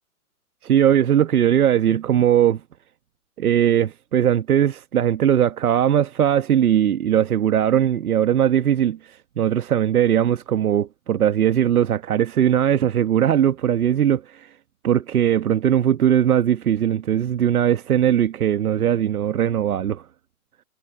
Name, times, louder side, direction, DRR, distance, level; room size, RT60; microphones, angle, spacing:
voice 1, 0.6-2.6 3.4-14.5 14.8-20.0, right 10 dB, 75° right, 1.6 m, -19 dB
hypercardioid pair, 125°, 44 cm